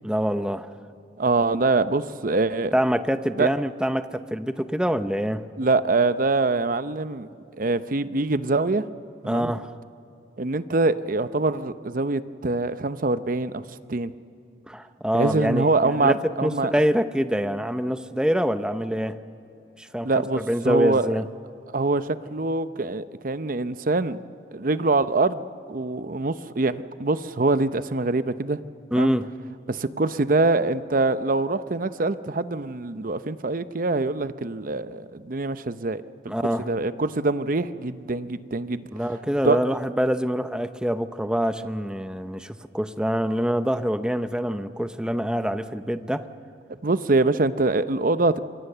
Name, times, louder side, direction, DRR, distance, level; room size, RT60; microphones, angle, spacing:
voice 1, 0.0-0.7 2.7-5.4 9.2-9.7 14.7-19.2 19.8-21.3 28.9-29.3 36.3-36.7 38.9-46.3, equal, 5° right, 10 dB, 0.7 m, -25 dB
voice 2, 1.2-2.7 3.4-3.5 5.6-7.3 7.6-8.8 9.2-9.5 10.4-13.6 13.9-14.1 15.1-16.7 20.0-21.1 21.7-24.2 24.5-28.6 28.9-29.1 29.7-36.3 36.7-38.8 39.4-39.6 46.8-48.4, right 3 dB, 50° right, 12 dB, 0.7 m, -24 dB
27.0 x 23.0 x 6.8 m, 2.8 s
head